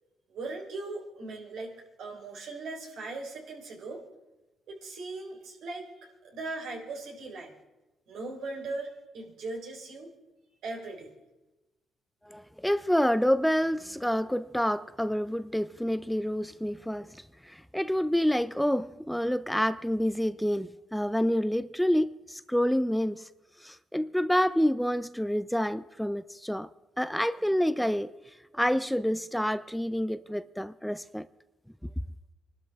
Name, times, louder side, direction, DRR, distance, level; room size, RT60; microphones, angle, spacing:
voice 1, 0.3-1.7 2.0-4.0 4.7-7.5 8.1-10.1 10.6-11.1, right 3 dB, 80° right, 3.8 m, -39 dB
voice 2, 12.3-23.3 23.6-26.7 27.0-28.1 28.5-31.3, equal, ahead, 0.4 m, -28 dB
25.0 x 12.5 x 3.5 m
cardioid pair, 90°, 0 cm